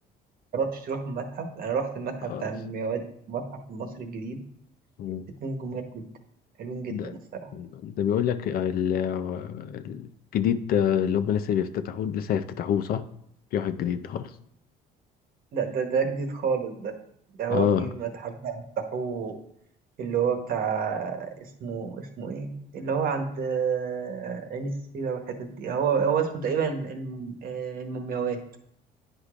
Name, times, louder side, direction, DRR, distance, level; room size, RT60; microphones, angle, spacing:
voice 1, 0.5-3.0 3.3-4.4 5.4-6.0 6.6-7.5 15.5-16.9 17.4-19.4 20.0-28.4, right 6 dB, 60° right, 1.1 m, -30 dB
voice 2, 7.5-13.0 13.5-14.3 17.5-17.9, left 9 dB, 60° left, 0.5 m, -27 dB
9.7 x 5.0 x 2.4 m
cardioid pair, 110°, 17 cm